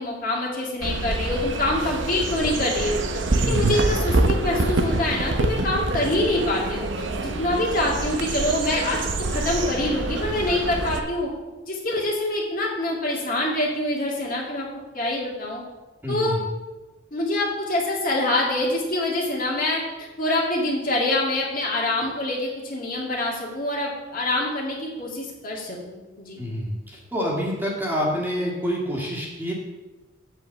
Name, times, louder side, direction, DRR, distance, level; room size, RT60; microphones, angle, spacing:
voice 1, 0.0-3.2 3.5-6.9 7.2-11.3 11.7-14.7 14.9-15.6 16.1-16.4 17.1-26.4, left 1 dB, 45° left, -3 dB, 2.1 m, -25 dB
sound 1, 0.8-11.0, right 2 dB, 65° right, 0.8 m, -26 dB
voice 2, 3.4-3.8 16.0-16.4 26.4-29.5, equal, 10° right, -4 dB, 1.9 m, -27 dB
8.0 x 5.0 x 7.1 m, 1.2 s
head